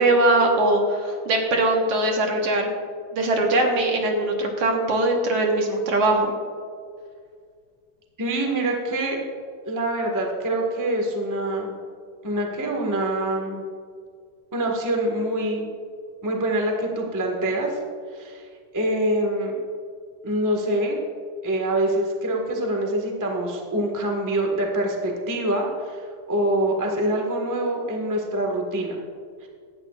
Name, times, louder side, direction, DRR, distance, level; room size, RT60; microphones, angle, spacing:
voice 1, 0.0-2.7 3.1-6.3, right 2 dB, 60° right, 1 dB, 2.2 m, -21 dB
voice 2, 8.2-9.2 9.6-11.7 12.2-13.6 14.5-15.7 16.2-17.8 18.1-18.4 18.7-19.5 20.2-21.0 21.4-29.0 29.4-29.5, right 1 dB, 10° right, 0 dB, 0.8 m, -25 dB
17.5 x 12.5 x 2.5 m, 2.1 s
omnidirectional pair, 3.4 m